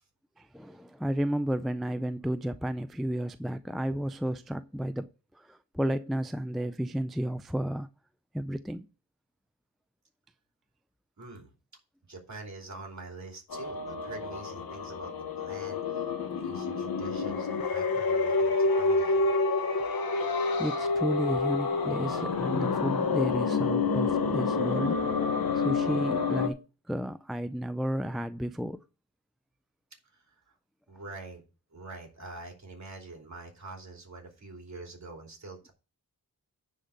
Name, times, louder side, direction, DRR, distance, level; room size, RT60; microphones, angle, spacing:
voice 1, 0.4-5.1 5.3-7.9 8.3-8.9 20.6-25.0 25.6-26.6 26.9-28.8, equal, ahead, 0.3 m, -32 dB
voice 2, 11.2-11.5 12.1-19.3 30.5-30.6 30.9-31.4 31.7-35.7, right 2 dB, 50° right, 3.0 m, -45 dB
sound 1, 13.5-26.5, left 4 dB, 75° left, 1.0 m, -28 dB
9.9 x 3.8 x 6.8 m
wide cardioid pair, 75°, 37 cm